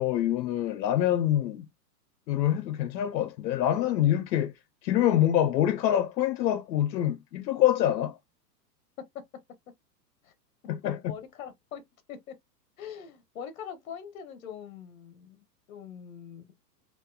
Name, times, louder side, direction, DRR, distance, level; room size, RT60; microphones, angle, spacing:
voice 1, 0.0-1.6 2.3-4.5 4.8-8.2 10.7-11.0, left 11 dB, 85° left, 0.7 m, -25 dB
voice 2, 10.8-11.8 12.1-12.3 12.8-16.5, left 8 dB, 55° left, 0.9 m, -43 dB
3.6 x 2.6 x 2.3 m
supercardioid pair, 175°, 50 cm